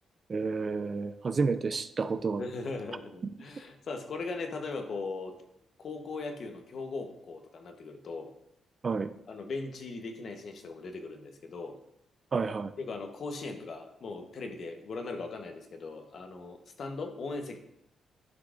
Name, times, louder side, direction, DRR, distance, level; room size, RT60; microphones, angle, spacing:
voice 1, 0.3-2.4 8.8-9.1 12.3-12.7, right 4 dB, 35° right, 12 dB, 0.4 m, -30 dB
voice 2, 2.4-5.4 5.8-8.3 9.3-11.8 12.8-17.6, left 3 dB, 55° left, 5 dB, 1.0 m, -39 dB
12.0 x 5.9 x 2.5 m, 0.79 s
cardioid pair, 115°, 0 cm